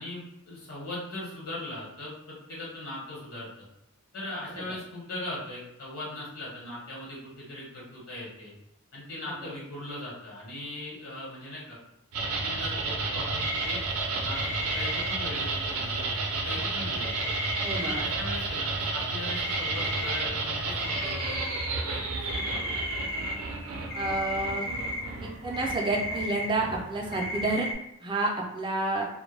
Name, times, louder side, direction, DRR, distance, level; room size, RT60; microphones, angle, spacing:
voice 1, 0.0-3.5 4.1-8.5 8.9-11.8 12.2-13.8 14.2-16.0 16.3-17.3 17.8-22.7, left 1 dB, 75° left, -6 dB, 1.0 m, -39 dB
sound 1, 12.1-27.7, right 3 dB, 80° right, 0.4 m, -32 dB
sound 2, 13.4-13.7 14.3-15.1 17.0-18.0 19.3-20.2 20.5-20.6 20.8-21.7 22.3-23.3 23.9-25.0 25.5-26.5 27.1-27.7, left 1 dB, 45° left, 0.4 m, -34 dB
voice 2, 17.6-18.0 23.9-24.7 25.2-27.7 28.0-29.0, right 2 dB, 20° right, 0 dB, 0.4 m, -29 dB
2.1 x 2.1 x 3.1 m, 0.80 s
head